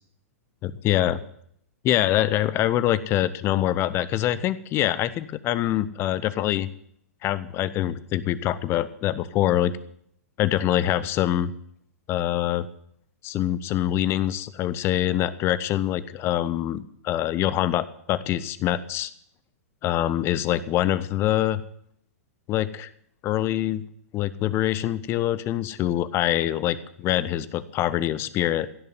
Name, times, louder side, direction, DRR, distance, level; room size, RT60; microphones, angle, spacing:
voice 1, 0.6-1.2 1.8-6.7 7.2-9.7 10.4-11.5 12.1-12.7 13.2-19.1 19.8-21.6 22.5-22.9 23.2-23.8 24.1-28.7, left 12 dB, 30° left, 16 dB, 0.8 m, -24 dB
16.0 x 6.9 x 9.3 m, 0.68 s
figure-of-eight pair, 110°, 8 cm